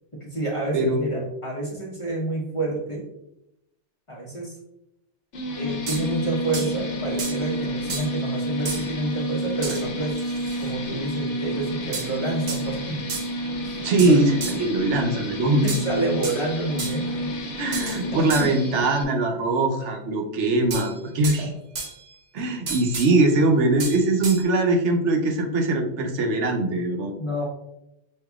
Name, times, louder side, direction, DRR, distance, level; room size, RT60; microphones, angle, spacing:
voice 1, 0.2-3.0 4.1-4.6 5.6-10.1 10.6-13.0 13.6-14.2 15.6-17.3 18.1-18.5 21.4-21.5 27.2-27.4, right 2 dB, 30° left, -4 dB, 1.0 m, -29 dB
voice 2, 0.7-1.2 13.8-15.7 17.6-21.5 22.3-27.1, right 2 dB, 80° right, 2 dB, 1.0 m, -22 dB
sound 1, 5.3-19.0, equal, 85° left, 1.1 m, -30 dB
sound 2, 5.9-6.1 6.5-6.7 7.2-7.4 7.9-8.2 8.6-8.9 9.6-9.8 10.1-10.7 11.9-12.2 12.5-12.6 13.1-13.3 14.0-14.7 15.7-16.4 16.8-17.1 17.7-18.0 18.3-18.6 20.7-21.4 21.7-22.1 22.7-23.1 23.8-24.4, right 3 dB, 60° right, 1.1 m, -33 dB
6.4 x 2.7 x 2.3 m, 0.85 s
omnidirectional pair, 1.2 m